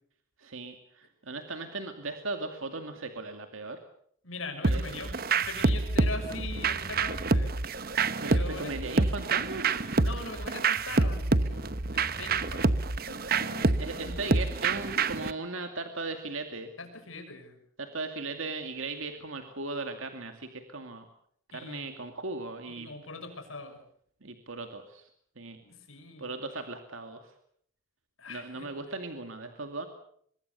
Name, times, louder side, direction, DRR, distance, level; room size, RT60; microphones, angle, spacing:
voice 1, 0.4-3.8 4.7-4.8 8.2-9.9 13.8-16.7 17.8-21.1 21.5-22.9 24.2-25.0 25.4-25.6 26.2-27.3 28.3-29.9, right 3 dB, 80° right, 6 dB, 2.4 m, -37 dB
voice 2, 4.2-7.5 8.2-8.7 10.0-11.6 11.9-12.7 13.0-14.2 16.8-17.6 21.5-21.9 22.7-23.8 25.6-26.3 28.2-28.7, left 3 dB, 85° left, 6 dB, 6.1 m, -42 dB
sound 1, 4.6-15.3, right 3 dB, 45° right, 1.0 m, -27 dB
23.5 x 22.5 x 6.9 m, 0.64 s
head